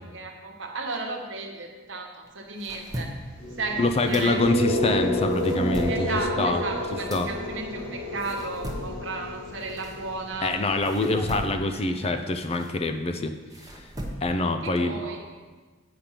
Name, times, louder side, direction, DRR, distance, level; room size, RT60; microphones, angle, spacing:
voice 1, 0.0-3.1 3.6-4.4 5.9-10.5 11.1-11.2 11.7-12.1 14.6-15.2, right 3 dB, 65° right, 1 dB, 1.2 m, -34 dB
sound 1, 2.2-4.8 5.1-10.4 10.8-14.6, equal, 20° right, 0.9 m, -39 dB
sound 2, 3.3-11.4, left 1 dB, 70° left, 2.4 m, -30 dB
voice 2, 3.8-6.1 6.4-6.6 7.1-7.3 10.4-13.3 14.2-15.0, left 2 dB, 30° left, 7 dB, 0.5 m, -25 dB
8.6 x 5.2 x 5.8 m, 1.4 s
head